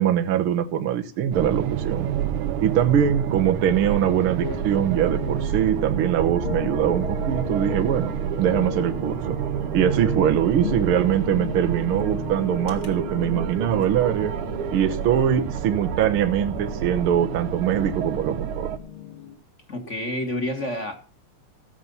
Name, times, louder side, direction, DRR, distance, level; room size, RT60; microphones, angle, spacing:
voice 1, 0.0-2.1 2.6-8.1 8.4-9.4 9.7-14.3 14.7-18.7, right 9 dB, 60° right, 5 dB, 1.5 m, -22 dB
sound 1, 1.3-18.8, right 10 dB, 90° right, 2.4 m, -29 dB
sound 2, 4.4-19.3, left 8 dB, 45° left, 2.8 m, -36 dB
voice 2, 19.7-20.9, left 1 dB, 25° left, 5 dB, 2.0 m, -28 dB
16.5 x 7.5 x 5.5 m, 0.36 s
omnidirectional pair, 3.3 m